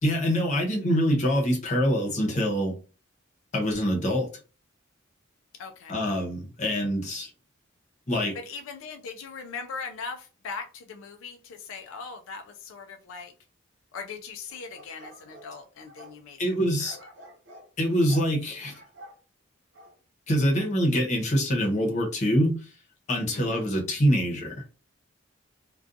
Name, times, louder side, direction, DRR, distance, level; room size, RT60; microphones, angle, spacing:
voice 1, 0.0-2.8 3.5-4.3 5.9-7.3 8.1-8.4 16.4-17.0 17.8-18.7 20.3-22.7 23.1-24.6, equal, 35° left, 0 dB, 0.8 m, -25 dB
voice 2, 5.5-6.0 8.3-13.3 13.9-16.5 16.8-16.9 23.3-23.7, left 5 dB, 75° left, 6 dB, 0.3 m, -40 dB
Dogs Barking, 14.5-16.2 16.9-17.7 18.1-18.3 18.7-19.2 19.7-20.0 20.5-20.7, right 1 dB, 60° right, 0.9 m, -49 dB
2.4 x 2.3 x 2.5 m, 0.35 s
head